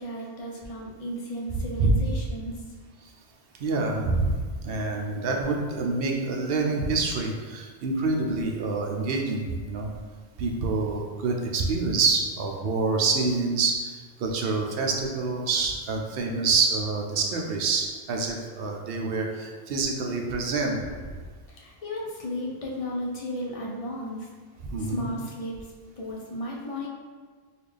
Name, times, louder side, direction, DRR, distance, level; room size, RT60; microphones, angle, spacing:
voice 1, 0.0-2.5 21.5-24.3 24.8-25.6 26.0-26.9, equal, 40° left, -3 dB, 0.6 m, -34 dB
voice 2, 3.6-4.4 4.6-9.9 10.4-13.9 14.2-20.8 24.6-25.1, right 3 dB, 65° right, 1 dB, 0.7 m, -26 dB
4.1 x 2.4 x 3.3 m, 1.5 s
omnidirectional pair, 1.1 m